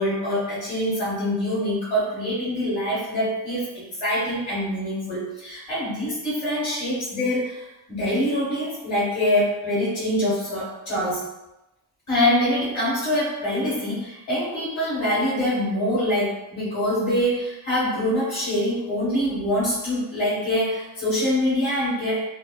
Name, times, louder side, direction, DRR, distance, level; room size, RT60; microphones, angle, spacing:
voice 1, 0.0-11.3 12.1-22.2, left 1 dB, 85° left, -10 dB, 1.4 m, -24 dB
3.0 x 2.0 x 2.2 m, 0.95 s
wide cardioid pair, 145°, 48 cm